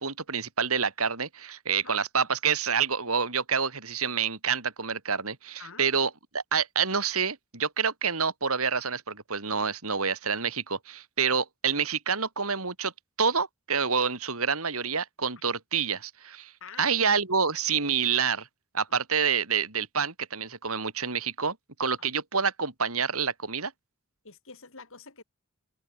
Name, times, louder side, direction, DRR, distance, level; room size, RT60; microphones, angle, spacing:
voice 1, 0.0-12.9 13.2-16.5 16.8-18.5 18.7-23.7, right 6 dB, 70° right, 3.8 m, -28 dB
voice 2, 16.6-16.9 18.9-19.0 24.2-25.2, left 5 dB, 65° left, 5.0 m, -47 dB
head